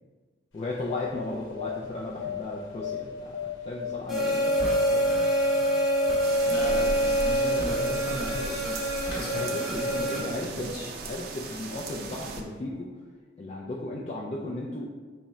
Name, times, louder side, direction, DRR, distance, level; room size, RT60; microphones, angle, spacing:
sound 1, 0.5-8.8 9.0-9.2, left 7 dB, 85° left, 0.8 m, -35 dB
voice 1, 0.5-5.0 5.4-5.6 9.3-12.9 13.4-14.9, left 2 dB, 35° left, -3 dB, 0.3 m, -36 dB
sound 2, 4.1-10.2, equal, ahead, 0.8 m, -26 dB
sound 3, 6.2-12.4, right 3 dB, 55° right, 0.4 m, -38 dB
voice 2, 6.4-10.9, equal, 55° left, -4 dB, 1.0 m, -36 dB
3.6 x 2.1 x 4.1 m, 1.5 s
head